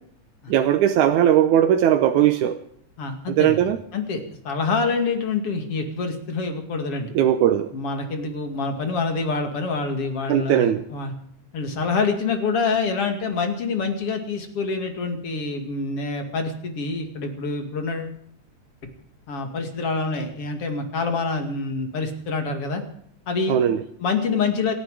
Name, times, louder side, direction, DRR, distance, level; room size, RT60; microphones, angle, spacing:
voice 1, 0.5-2.6 3.3-3.8 7.1-7.7 10.3-10.8 23.5-23.8, right 10 dB, 90° right, 6 dB, 2.3 m, -18 dB
voice 2, 3.0-7.1 7.7-11.1 11.5-18.1 19.3-22.8 23.3-23.6 24.0-24.7, left 4 dB, 50° left, 5 dB, 3.1 m, -26 dB
28.5 x 9.9 x 4.9 m, 0.66 s
omnidirectional pair, 3.5 m